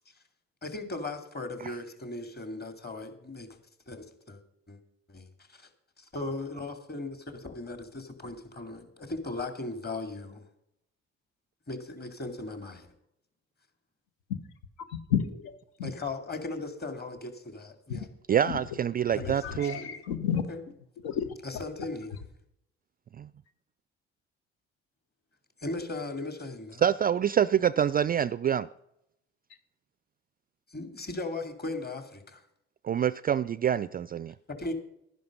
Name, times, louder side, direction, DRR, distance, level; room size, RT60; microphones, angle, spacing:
voice 1, 0.6-3.6 3.9-4.4 4.7-4.8 5.1-5.7 6.0-10.4 11.7-12.9 15.8-18.1 19.1-20.0 20.5-20.6 21.4-22.2 25.6-26.9 30.7-32.4 34.5-34.7, left 2 dB, 30° left, 7 dB, 2.4 m, -38 dB
voice 2, 14.9-15.9 17.9-18.0 18.5-18.6 19.2-20.5 21.0-21.3, left 8 dB, 75° left, 10 dB, 1.1 m, -31 dB
voice 3, 18.3-19.8 23.2-23.3 26.8-28.7 32.8-34.3, right 9 dB, 30° right, 18 dB, 0.3 m, -26 dB
11.5 x 10.5 x 5.2 m, 0.77 s
hypercardioid pair, 50°, 34 cm